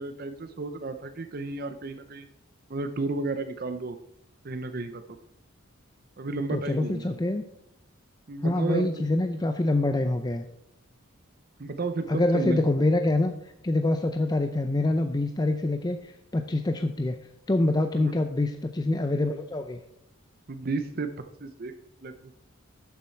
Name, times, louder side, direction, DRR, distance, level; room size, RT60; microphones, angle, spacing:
voice 1, 0.0-2.3 2.7-4.0 4.4-5.0 6.2-7.2 8.3-9.1 11.6-12.7 17.9-18.1 20.5-21.1 21.4-21.7 22.0-22.3, right 3 dB, 45° right, 8 dB, 0.6 m, -32 dB
voice 2, 6.5-7.4 8.4-10.4 12.1-13.3 13.6-17.2 17.5-19.8, left 2 dB, 20° left, 7 dB, 0.4 m, -25 dB
12.0 x 7.1 x 4.5 m, 0.80 s
head